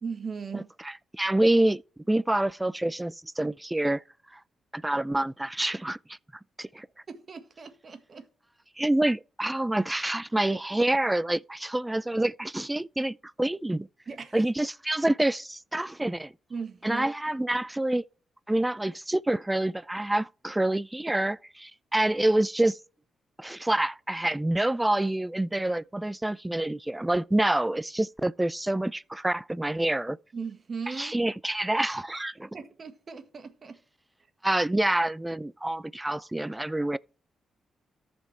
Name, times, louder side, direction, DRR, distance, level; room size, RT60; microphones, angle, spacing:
voice 1, 0.0-0.7 7.1-8.3 14.1-14.4 16.5-17.4 30.3-31.2 32.4-33.8, right 5 dB, 50° right, 1.6 m, -38 dB
voice 2, 0.5-1.8 2.1-4.0 4.3-4.4 4.7-6.2 6.6-6.9 8.8-13.9 14.3-16.3 16.8-18.0 18.5-22.8 23.4-30.2 31.0-32.5 34.4-37.0, right 1 dB, 15° right, 0.4 m, -27 dB
14.0 x 5.3 x 3.3 m
supercardioid pair, 60°, 0 cm